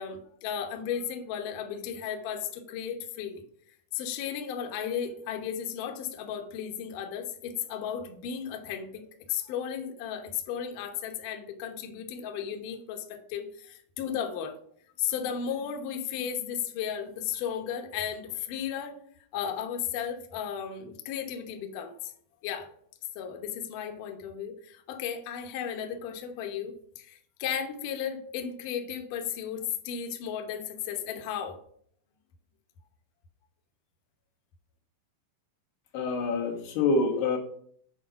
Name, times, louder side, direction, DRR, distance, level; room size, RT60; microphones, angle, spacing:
voice 1, 0.0-3.4 3.9-9.0 9.3-14.5 15.0-19.0 19.3-22.1 22.4-22.7 23.2-31.6, left 8 dB, 70° left, 4 dB, 2.3 m, -34 dB
voice 2, 35.9-37.4, left 3 dB, 90° left, 0 dB, 3.5 m, -26 dB
8.7 x 5.1 x 5.7 m, 0.62 s
omnidirectional pair, 4.5 m